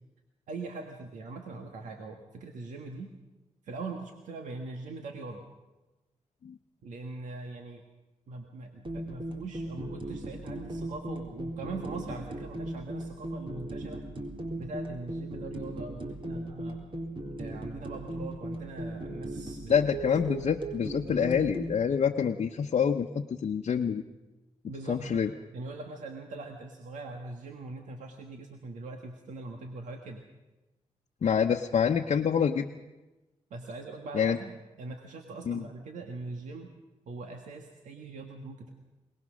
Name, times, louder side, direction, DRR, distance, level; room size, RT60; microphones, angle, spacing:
voice 1, 0.5-3.1 3.6-5.4 6.8-7.8 8.3-14.0 14.6-16.8 17.4-19.7 24.6-25.3 25.5-30.2 33.5-34.5 34.8-36.7 37.1-38.7, right 3 dB, 85° right, 3 dB, 1.7 m, -41 dB
sound 1, 8.9-21.7, right 1 dB, 45° right, 3.8 m, -37 dB
voice 2, 19.7-24.0 24.9-25.3 31.2-32.7 34.1-34.4 35.5-35.6, left 7 dB, 60° left, 2 dB, 0.9 m, -26 dB
22.5 x 19.5 x 6.4 m, 1.1 s
cardioid pair, 65°, 12 cm